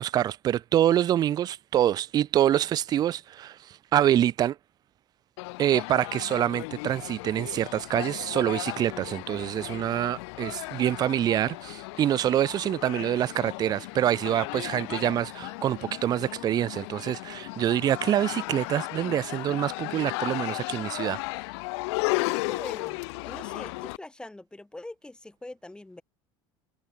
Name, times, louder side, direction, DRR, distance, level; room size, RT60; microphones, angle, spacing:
voice 1, 0.0-4.6 5.6-21.2, right 11 dB, 30° right, 0.5 m, -26 dB
sound 1, 5.4-24.0, left 28 dB, 80° left, 3.7 m, -35 dB
voice 2, 22.2-23.0 23.2-26.0, left 2 dB, 5° left, 3.9 m, -43 dB
cardioid pair, 150°, 14 cm